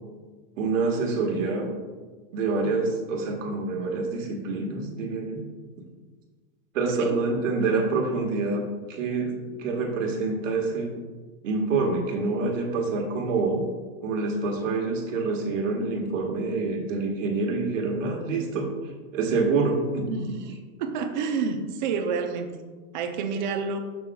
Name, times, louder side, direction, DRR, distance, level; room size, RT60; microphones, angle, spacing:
voice 1, 0.6-1.7 2.3-5.5 6.7-8.6 8.9-11.0 11.4-13.6 14.0-18.7 19.1-20.1, right 3 dB, 70° right, 1 dB, 1.7 m, -26 dB
voice 2, 20.1-20.5 20.8-22.5 22.9-23.8, right 5 dB, 35° right, 6 dB, 0.6 m, -29 dB
8.7 x 6.8 x 2.3 m, 1.4 s
supercardioid pair, 175°, 39 cm